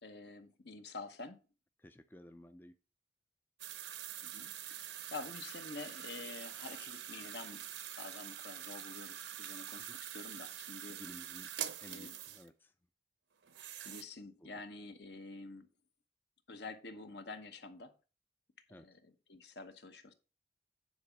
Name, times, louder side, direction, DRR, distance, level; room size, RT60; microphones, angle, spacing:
voice 1, 0.0-1.4 4.2-7.6 8.0-11.0 11.9-12.2 13.8-15.7 16.5-17.9 18.7-20.1, left 3 dB, 65° left, 7 dB, 1.1 m, -48 dB
voice 2, 1.8-2.8 9.8-10.0 10.9-11.5 11.8-12.7 14.4-14.5 18.7-18.9, left 1 dB, 10° left, 9 dB, 0.4 m, -54 dB
sound 1, 3.6-12.5 13.4-14.0, right 11 dB, 75° right, 0.7 m, -45 dB
9.5 x 4.0 x 5.8 m, 0.34 s
head